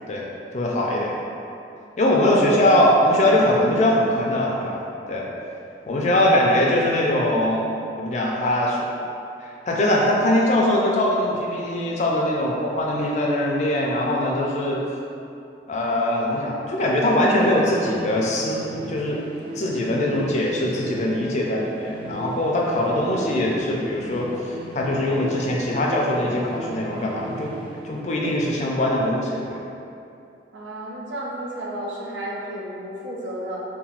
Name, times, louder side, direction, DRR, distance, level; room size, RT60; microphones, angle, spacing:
voice 1, 0.5-1.2 2.0-4.8 5.1-5.3 5.9-7.6 8.0-8.9 9.4-14.8 15.7-19.2 19.6-27.5 27.8-29.6, left 1 dB, 40° left, -2 dB, 0.3 m, -22 dB
voice 2, 2.0-2.4 6.0-6.3 30.5-33.6, right 1 dB, 85° right, -4 dB, 0.5 m, -32 dB
sound 1, 16.6-28.6, right 1 dB, 30° right, 0.4 m, -37 dB
2.9 x 2.2 x 2.8 m, 2.6 s
head